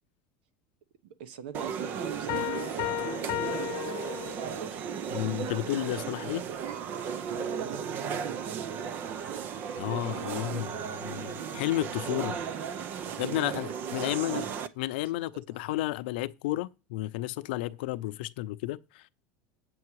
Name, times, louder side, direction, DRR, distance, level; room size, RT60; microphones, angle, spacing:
voice 1, 1.0-4.2 4.6-4.8 7.1-9.5 10.0-11.6 13.0-14.6 15.5-15.8, right 7 dB, 80° right, 1.1 m, -44 dB
sound 1, 1.5-14.7, right 7 dB, 35° right, 0.6 m, -35 dB
sound 2, 2.3-4.8, left 17 dB, 50° left, 0.8 m, -34 dB
voice 2, 5.1-6.4 9.8-10.7 11.0-12.4 13.2-14.5 14.8-19.1, left 16 dB, 75° left, 0.6 m, -32 dB
8.6 x 7.8 x 4.7 m
supercardioid pair, 160°, 5 cm